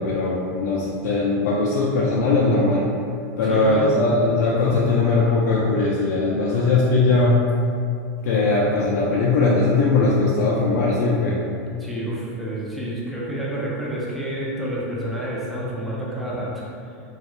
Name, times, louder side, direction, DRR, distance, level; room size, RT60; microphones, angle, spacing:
voice 1, 0.0-2.9 3.4-7.4 8.2-11.4, left 3 dB, 75° left, -5 dB, 0.4 m, -20 dB
voice 2, 3.5-3.9 11.8-16.6, right 1 dB, ahead, -7 dB, 0.4 m, -29 dB
3.0 x 2.3 x 2.9 m, 2.4 s
supercardioid pair, 170°, 9 cm